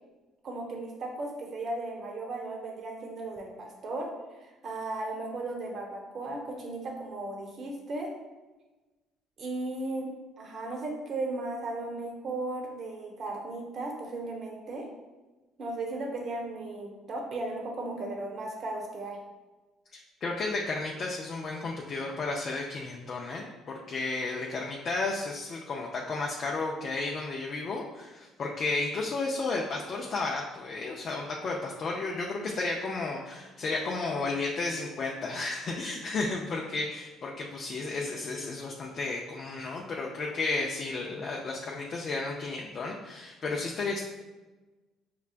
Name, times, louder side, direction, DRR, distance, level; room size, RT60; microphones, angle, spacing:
voice 1, 0.4-4.1 4.3-8.1 9.4-10.1 10.4-14.9 15.6-19.2, right 2 dB, 50° right, 0 dB, 0.9 m, -36 dB
voice 2, 19.9-44.0, left 3 dB, 50° left, -2 dB, 0.4 m, -33 dB
5.5 x 2.2 x 2.4 m, 1.2 s
supercardioid pair, 80°, 0 cm